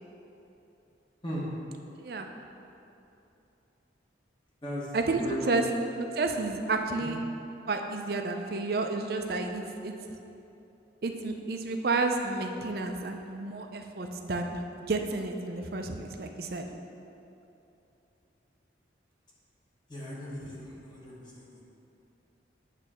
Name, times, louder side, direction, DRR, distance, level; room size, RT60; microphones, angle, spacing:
voice 1, 4.6-5.6 6.2-6.3 6.9-7.1 19.9-21.6, equal, 25° left, -6 dB, 1.2 m, -38 dB
voice 2, 6.0-7.2 7.7-9.9 11.0-14.6 14.9-16.7, right 3 dB, 55° right, 4 dB, 0.5 m, -31 dB
8.5 x 3.3 x 6.1 m, 2.8 s
head